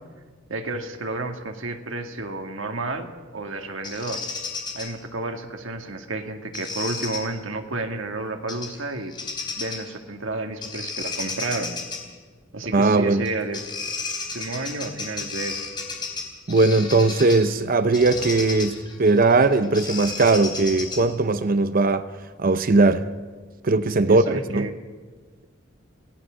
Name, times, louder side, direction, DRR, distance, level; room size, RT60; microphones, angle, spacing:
voice 1, 0.5-4.2 4.7-9.2 9.5-11.8 12.5-13.6 14.3-15.6 24.0-24.8, right 2 dB, 90° right, 1.9 m, -31 dB
Bird vocalization bird call bird song, 3.8-4.9 6.5-7.2 8.5-8.8 9.1-9.9 10.6-12.0 13.2-13.3 13.5-17.5 17.9-21.2, left 4 dB, 25° left, 4.0 m, -33 dB
voice 2, 12.7-13.3 16.5-22.1 22.4-23.1 23.6-24.7, right 3 dB, 45° right, 0.7 m, -19 dB
27.5 x 18.0 x 6.3 m
head